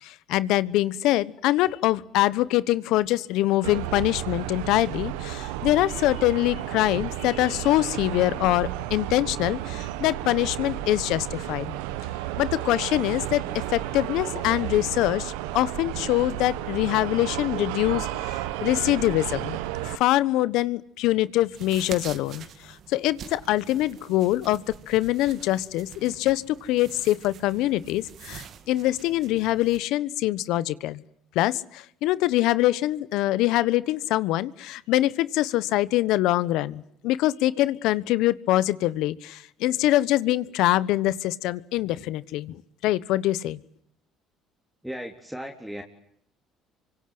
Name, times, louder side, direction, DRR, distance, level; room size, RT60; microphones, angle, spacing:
voice 1, 0.0-11.7 12.4-13.4 13.7-18.1 18.6-19.6 19.8-22.4 22.9-31.0 31.3-42.6 42.8-43.6, left 16 dB, 75° left, 18 dB, 1.2 m, -24 dB
sound 1, 3.6-20.0, right 14 dB, 90° right, 1.5 m, -32 dB
sound 2, 21.5-29.8, right 8 dB, 55° right, 2.5 m, -45 dB
voice 2, 44.8-45.8, equal, 5° right, 2 dB, 3.8 m, -36 dB
28.5 x 25.0 x 7.9 m, 0.73 s
supercardioid pair, 85°, 0 cm